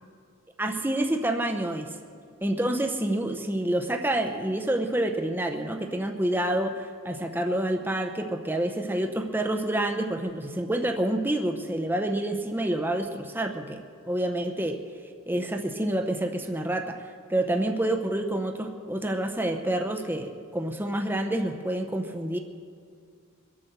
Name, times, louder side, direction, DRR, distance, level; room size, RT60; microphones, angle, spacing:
voice 1, 0.6-1.9 2.4-14.8 15.3-22.4, right 1 dB, 10° right, 4 dB, 0.8 m, -28 dB
23.0 x 8.7 x 6.7 m, 2.1 s
head